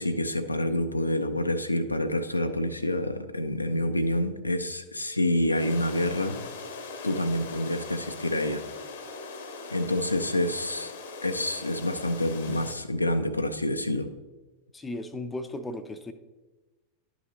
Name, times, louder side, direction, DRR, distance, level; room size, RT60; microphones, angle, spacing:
voice 1, 0.0-6.4 7.0-8.6 9.7-10.9 11.2-14.1, left 1 dB, 85° left, 8 dB, 0.4 m, -27 dB
sound 1, 5.5-12.7, left 4 dB, 60° left, 0.8 m, -40 dB
voice 2, 14.7-16.1, left 1 dB, 10° left, 9 dB, 0.5 m, -35 dB
10.5 x 5.6 x 2.9 m, 1.2 s
figure-of-eight pair, 90°, 0 cm